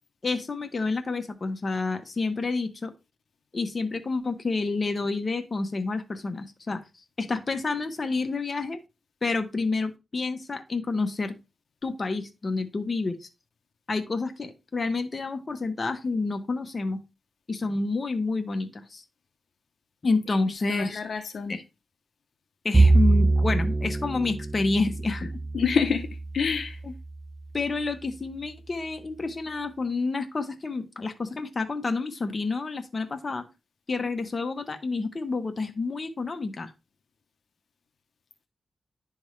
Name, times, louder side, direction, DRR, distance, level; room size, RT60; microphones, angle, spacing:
voice 1, 0.2-2.9 3.5-6.8 7.2-8.8 9.2-11.4 11.8-13.3 13.9-17.0 17.5-19.0 20.0-21.2 21.5-21.6 22.6-25.3 26.8-26.9 27.5-33.4 33.9-36.7, left 3 dB, 40° left, 7 dB, 1.0 m, -29 dB
voice 2, 20.7-21.6 25.5-26.1 26.3-26.8, left 6 dB, 75° left, 6 dB, 0.6 m, -27 dB
Bowed string instrument, 22.7-27.1, right 2 dB, 25° right, 0.5 m, -24 dB
10.5 x 3.6 x 3.1 m, 0.26 s
wide cardioid pair, 85°, 0 cm